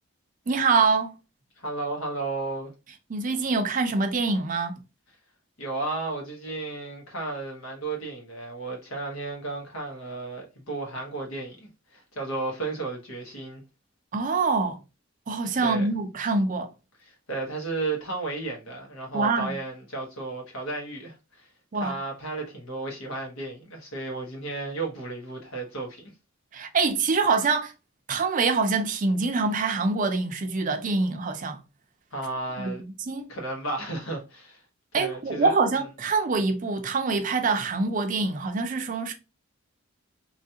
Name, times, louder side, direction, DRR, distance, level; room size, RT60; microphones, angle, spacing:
voice 1, 0.5-1.1 3.1-4.8 14.1-14.8 15.3-16.7 19.1-19.6 21.7-22.0 26.5-27.7 28.1-31.6 32.6-33.3 34.9-39.1, right 4 dB, 40° right, 0.4 m, -25 dB
voice 2, 1.6-2.7 5.6-13.6 15.6-15.9 17.1-21.5 21.7-26.0 32.1-32.8 33.3-34.6 34.9-35.5, right 3 dB, 90° left, 1.1 m, -33 dB
3.0 x 2.4 x 2.8 m
head